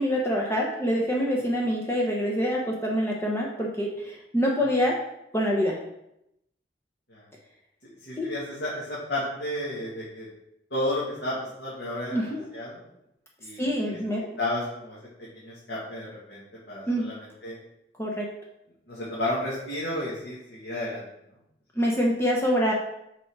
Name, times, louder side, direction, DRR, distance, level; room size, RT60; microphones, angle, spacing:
voice 1, 0.0-5.0 5.3-5.8 8.2-8.3 12.1-12.5 13.6-14.3 16.9-17.1 18.0-18.3 21.8-22.7, equal, 15° left, -2 dB, 0.9 m, -25 dB
voice 2, 7.8-10.3 10.7-12.2 12.5-12.8 13.4-13.7 14.4-15.0 15.3-16.4 16.7-17.1 17.4-17.6 18.9-21.0, left 1 dB, 80° left, -9 dB, 2.2 m, -32 dB
6.8 x 4.5 x 4.7 m, 0.82 s
head